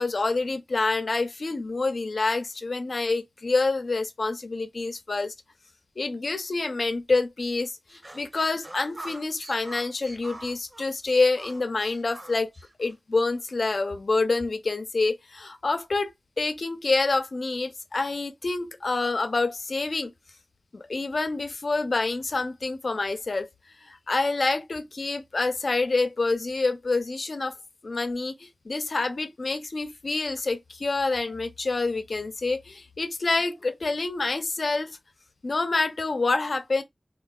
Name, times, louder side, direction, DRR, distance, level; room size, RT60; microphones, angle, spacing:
voice 1, 0.0-5.3 6.0-12.5 12.8-20.1 20.7-23.5 23.8-27.6 27.8-35.0 35.4-36.8, left 3 dB, 75° left, 0.4 m, -27 dB
sound 1, 7.9-13.0, right 1 dB, 40° right, 0.5 m, -44 dB
3.7 x 2.3 x 2.2 m
wide cardioid pair, 50°, 0 cm